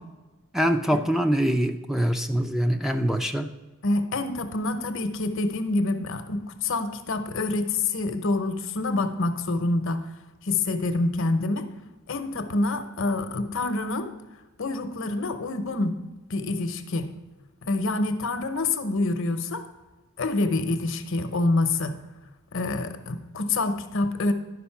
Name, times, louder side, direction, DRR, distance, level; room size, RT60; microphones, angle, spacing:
voice 1, 0.5-3.5, equal, ahead, 6 dB, 0.4 m, -24 dB
voice 2, 3.8-10.1 10.4-11.7 12.1-14.1 14.6-16.0 16.3-17.1 17.6-19.7 20.2-22.0 22.5-24.3, left 2 dB, 65° left, 9 dB, 0.8 m, -26 dB
11.0 x 5.1 x 5.8 m, 1.1 s
head